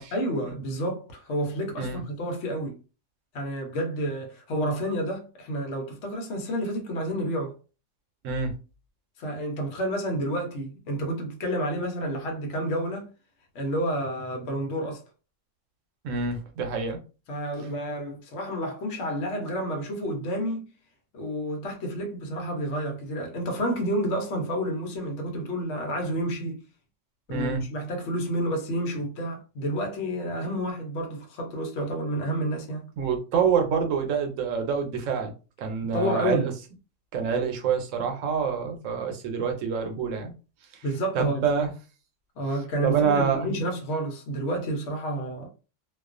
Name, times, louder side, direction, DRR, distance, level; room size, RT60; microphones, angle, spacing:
voice 1, 0.1-2.8 3.3-7.6 9.2-13.1 13.5-15.0 17.3-20.7 21.1-26.6 27.3-32.9 35.8-36.5 40.8-41.5 42.4-45.5, equal, 70° left, 1.0 m, -30 dB
voice 2, 16.0-17.0 27.3-27.6 33.0-35.3 35.6-36.5 37.1-40.3 41.1-41.7 42.8-43.5, right 6 dB, 85° right, 1.0 m, -26 dB
2.3 x 2.3 x 2.4 m
omnidirectional pair, 1.3 m